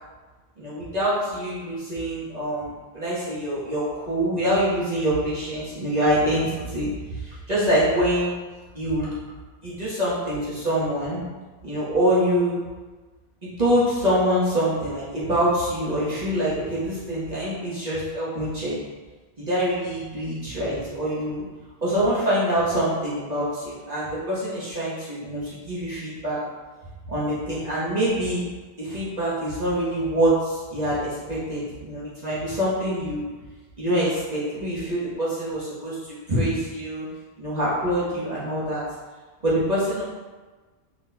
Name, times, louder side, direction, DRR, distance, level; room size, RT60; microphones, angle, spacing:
voice 1, 0.6-8.3 8.7-9.1 9.6-11.2 11.6-12.6 13.4-18.8 19.4-21.4 21.8-26.4 27.1-28.4 28.8-33.3 33.8-37.0 37.4-38.8 39.4-40.0, right 1 dB, 40° right, -10 dB, 1.2 m, -25 dB
4.4 x 3.9 x 2.2 m, 1.3 s
omnidirectional pair, 1.1 m